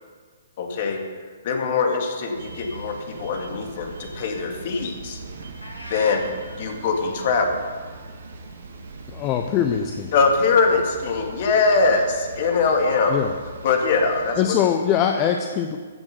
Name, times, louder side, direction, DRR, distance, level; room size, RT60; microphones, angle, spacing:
voice 1, 0.6-1.0 1.4-5.2 5.9-6.3 6.6-7.6 10.1-13.2 13.6-14.6, left 4 dB, 45° left, 3 dB, 2.1 m, -22 dB
sound 1, 2.3-14.4, right 3 dB, 65° right, 1.9 m, -40 dB
sound 2, 5.6-6.2, equal, 85° left, 2.8 m, -36 dB
voice 2, 9.1-10.1 13.1-13.3 14.4-15.8, left 9 dB, 30° left, 5 dB, 0.8 m, -22 dB
14.5 x 7.1 x 6.7 m, 1.5 s
figure-of-eight pair, 120°, 0 cm